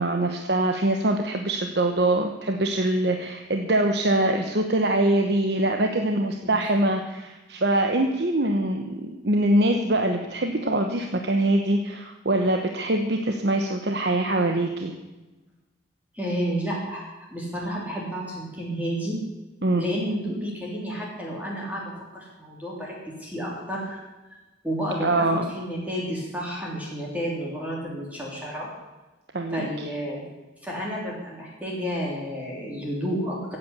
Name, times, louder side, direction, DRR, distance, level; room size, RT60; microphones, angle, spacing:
voice 1, 0.0-14.9 19.6-19.9 25.0-25.5 29.3-29.7, right 1 dB, 60° right, 4 dB, 1.1 m, -23 dB
voice 2, 16.1-19.2 19.8-24.0 24.6-25.3 25.5-28.7 29.5-30.2 30.6-33.6, equal, 10° right, -4 dB, 3.3 m, -31 dB
15.5 x 8.6 x 8.2 m, 1.1 s
head